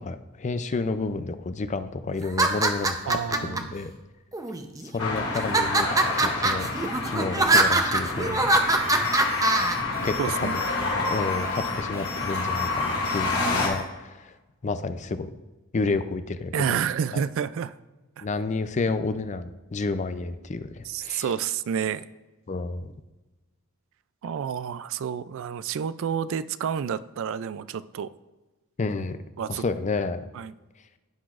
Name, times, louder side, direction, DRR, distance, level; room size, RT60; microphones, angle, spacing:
voice 1, 0.0-3.9 4.8-5.9 6.1-6.7 7.0-8.5 10.0-14.3 14.6-15.3 15.7-16.8 17.1-17.2 18.2-21.3 22.5-22.9 28.8-29.2 29.5-30.2, left 3 dB, 35° left, 11 dB, 0.4 m, -30 dB
sound 1, 2.2-3.6 4.3-4.9 5.3-9.7, right 2 dB, 15° right, 0.6 m, -23 dB
voice 2, 3.1-3.7 10.2-10.6 16.5-17.7 18.2-18.3 20.8-22.0 24.2-28.1 29.4-29.6 30.3-30.5, right 8 dB, 65° right, 15 dB, 0.3 m, -29 dB
sound 2, 5.0-13.7, left 3 dB, 90° left, 2.4 m, -29 dB
sound 3, 8.8-13.9, left 4 dB, 65° left, 1.5 m, -40 dB
14.5 x 6.0 x 2.5 m, 1.1 s
head